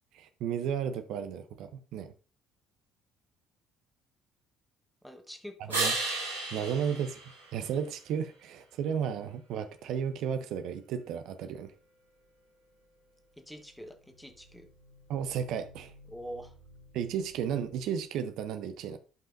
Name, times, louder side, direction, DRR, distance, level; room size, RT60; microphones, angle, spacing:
voice 1, 0.1-2.1 5.6-5.9 6.5-7.2 7.5-11.7 15.1-15.9 16.9-19.0, right 8 dB, 60° right, 0.6 m, -33 dB
voice 2, 5.0-5.8 6.6-6.7 13.4-14.7 16.1-16.5, equal, 5° left, 1.3 m, -45 dB
sound 1, 5.7-8.3 14.0-18.0, right 3 dB, 85° right, 2.2 m, -38 dB
10.5 x 5.5 x 2.5 m
figure-of-eight pair, 55°, 0 cm